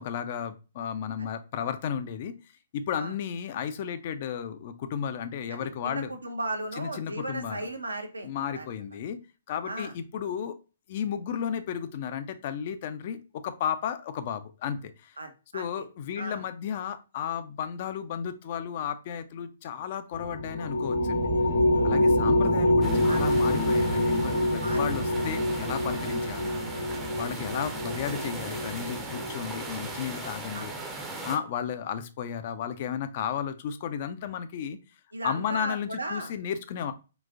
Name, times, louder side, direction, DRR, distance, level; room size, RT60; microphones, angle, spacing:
voice 1, 0.0-2.4 2.7-6.1 6.8-7.7 8.2-9.2 9.5-10.6 10.9-15.2 15.5-21.3 21.8-26.5 27.2-30.7 31.2-34.8 35.2-36.9, left 8 dB, 40° left, 10 dB, 0.3 m, -33 dB
voice 2, 5.5-8.7 9.6-9.9 15.2-15.8 16.2-16.4 21.7-22.1 23.1-23.2 24.6-25.1 30.5-30.7 35.1-36.3, right 2 dB, 75° right, 6 dB, 0.6 m, -36 dB
sound 1, 20.1-29.9, left 1 dB, 75° left, 1.0 m, -26 dB
sound 2, 22.8-31.4, right 3 dB, 10° right, 0.5 m, -39 dB
3.9 x 2.4 x 2.4 m, 0.31 s
figure-of-eight pair, 120°, 0 cm